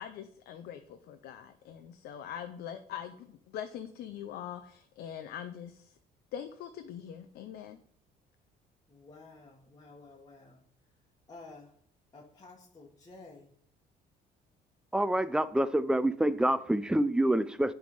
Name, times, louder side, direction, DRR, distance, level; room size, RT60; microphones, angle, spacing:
voice 1, 0.0-6.0 6.3-7.8, left 9 dB, 70° left, 8 dB, 0.6 m, -43 dB
voice 2, 8.9-10.6 11.3-11.7 12.1-13.5, left 3 dB, 25° left, -3 dB, 1.4 m, -52 dB
voice 3, 14.9-17.7, right 1 dB, 5° right, 14 dB, 0.4 m, -27 dB
10.5 x 3.5 x 5.4 m, 0.64 s
cardioid pair, 110°, 17 cm